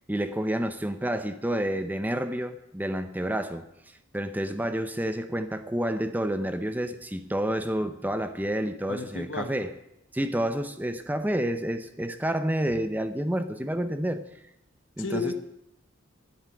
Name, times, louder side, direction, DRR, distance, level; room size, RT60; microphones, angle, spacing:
voice 1, 0.1-3.6 4.1-9.7 10.1-14.2 15.0-15.3, right 1 dB, 10° right, 9 dB, 0.7 m, -29 dB
voice 2, 8.9-9.5 15.0-15.3, left 4 dB, 65° left, 8 dB, 1.3 m, -32 dB
11.5 x 8.0 x 9.5 m, 0.85 s
head